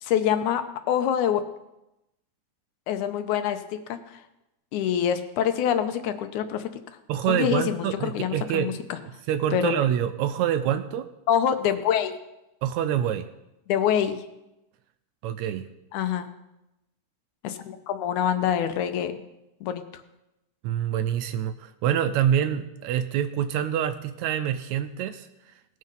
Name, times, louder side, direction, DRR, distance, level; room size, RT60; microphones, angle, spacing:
voice 1, 0.0-1.4 2.9-4.2 4.7-6.7 7.3-9.0 9.5-9.7 11.3-12.2 13.7-14.2 15.9-16.3 17.4-19.1 19.6-20.0, left 9 dB, 80° left, 9 dB, 2.2 m, -25 dB
voice 2, 7.1-11.1 12.6-13.3 15.2-15.7 20.6-25.3, right 10 dB, 80° right, 9 dB, 1.8 m, -26 dB
19.0 x 6.6 x 5.4 m, 0.93 s
omnidirectional pair, 3.5 m